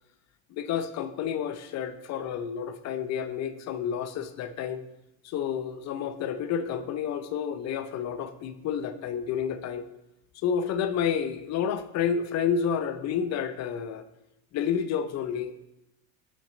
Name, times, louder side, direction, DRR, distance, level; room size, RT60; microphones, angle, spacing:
voice 1, 0.5-4.8 5.2-9.8 10.3-14.0 14.5-15.7, left 7 dB, 40° left, 11 dB, 0.6 m, -30 dB
5.8 x 5.3 x 3.9 m, 0.88 s
supercardioid pair, 100°, 41 cm